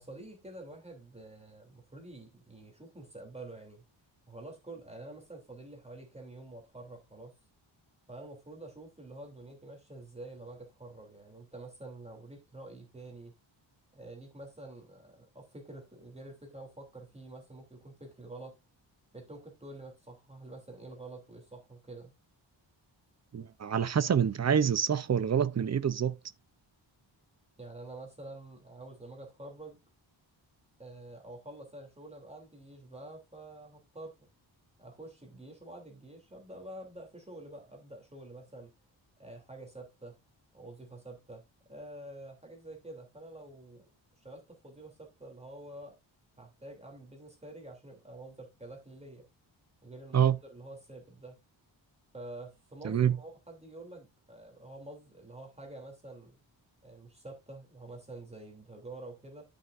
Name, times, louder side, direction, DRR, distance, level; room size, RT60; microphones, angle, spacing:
voice 1, 0.0-3.8 4.3-7.4 8.1-13.3 13.9-18.5 19.1-22.1 27.6-29.8 30.8-34.3 34.8-38.7 39.2-40.2 40.5-41.4 41.7-43.9 44.2-45.9 46.4-49.2 49.8-51.3 52.1-56.4 56.8-59.4, right 2 dB, 15° right, 3.0 m, -48 dB
voice 2, 23.3-26.2 50.1-50.4 52.8-53.2, right 8 dB, 35° right, 0.6 m, -26 dB
13.0 x 6.4 x 2.6 m
wide cardioid pair, 170°, 46 cm